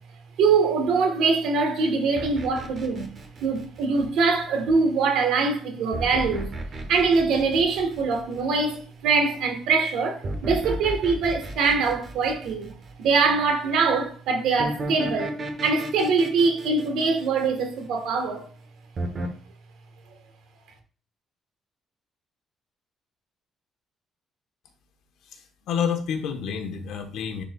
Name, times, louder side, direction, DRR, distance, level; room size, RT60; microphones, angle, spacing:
voice 1, 0.4-3.1 3.4-6.5 6.9-12.7 13.0-18.4, right 4 dB, 80° right, 1.4 m, -23 dB
sound 1, 2.2-4.4 5.9-8.6 10.2-13.1 14.6-18.0 19.0-19.3, right 1 dB, 35° right, 1.0 m, -34 dB
voice 2, 25.3-27.4, left 7 dB, 80° left, 1.2 m, -29 dB
10.0 x 4.1 x 2.3 m
cardioid pair, 170°, 0 cm